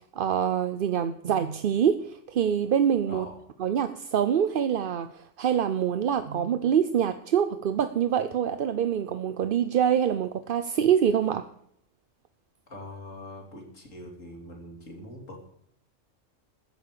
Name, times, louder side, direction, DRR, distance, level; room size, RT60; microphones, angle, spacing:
voice 1, 0.1-3.3 3.6-11.5, right 8 dB, 50° right, 10 dB, 0.7 m, -25 dB
voice 2, 12.7-15.5, left 1 dB, 75° left, 0 dB, 3.4 m, -43 dB
14.5 x 8.5 x 6.9 m, 0.68 s
omnidirectional pair, 1.4 m